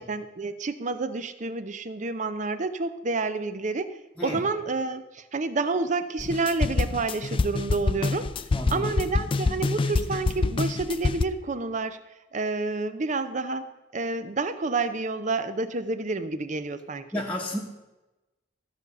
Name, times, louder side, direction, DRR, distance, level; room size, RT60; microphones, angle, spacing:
voice 1, 0.1-3.9 4.2-8.3 8.7-12.0 12.3-13.7 13.9-17.1, right 3 dB, 40° right, 12 dB, 0.6 m, -29 dB
sound 1, 6.2-11.2, left 3 dB, 30° left, 0.3 m, -26 dB
voice 2, 8.5-8.9 17.1-17.6, equal, 10° left, -3 dB, 1.1 m, -31 dB
14.0 x 4.9 x 6.8 m, 1.0 s
head